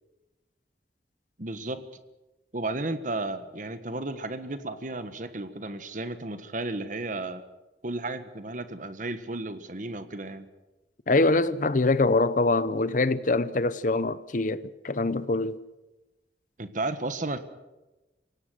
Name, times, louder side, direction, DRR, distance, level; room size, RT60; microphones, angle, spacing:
voice 1, 1.4-1.8 2.5-7.4 7.8-10.5 16.6-17.4, right 2 dB, 45° right, 1.4 m, -33 dB
voice 2, 11.1-15.6, left 2 dB, 45° left, 0.7 m, -24 dB
25.5 x 17.5 x 6.4 m
head